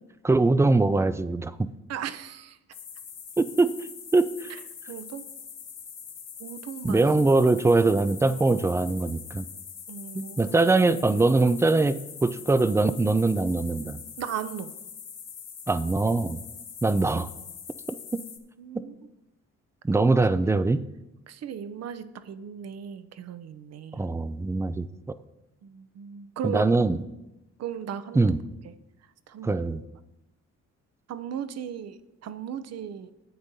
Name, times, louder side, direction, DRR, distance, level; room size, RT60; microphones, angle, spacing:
voice 1, 0.2-1.7 3.4-3.7 4.1-4.5 6.8-9.5 10.1-14.0 15.7-16.4 16.8-17.3 19.8-20.8 23.9-24.9 26.4-27.0 28.1-28.4 29.4-29.8, right 3 dB, 10° right, 14 dB, 0.3 m, -22 dB
voice 2, 1.9-2.6 4.5-4.6 4.9-5.3 6.4-7.0 9.9-10.6 14.2-14.7 18.6-18.9 20.4-20.6 21.3-24.0 25.6-26.7 27.6-28.2 28.6-28.7 29.3-29.5 31.1-33.1, right 8 dB, 55° right, 12 dB, 0.6 m, -36 dB
sound 1, 2.7-18.4, left 7 dB, 55° left, 1.1 m, -43 dB
11.5 x 8.8 x 2.7 m, 0.94 s
cardioid pair, 90°, 30 cm